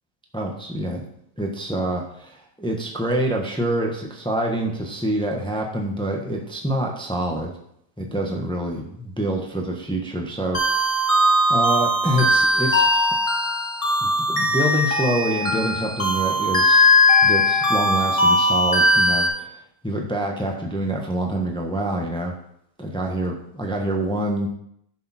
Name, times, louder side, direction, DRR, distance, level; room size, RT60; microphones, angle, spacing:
voice 1, 0.3-1.0 1.4-7.5 8.0-11.1 11.5-13.1 14.0-16.8 17.2-22.3 22.8-24.5, right 1 dB, 5° left, 1 dB, 1.1 m, -26 dB
sound 1, 10.5-19.3, left 1 dB, 25° left, 1.7 m, -19 dB
11.5 x 6.8 x 4.3 m, 0.72 s
omnidirectional pair, 1.5 m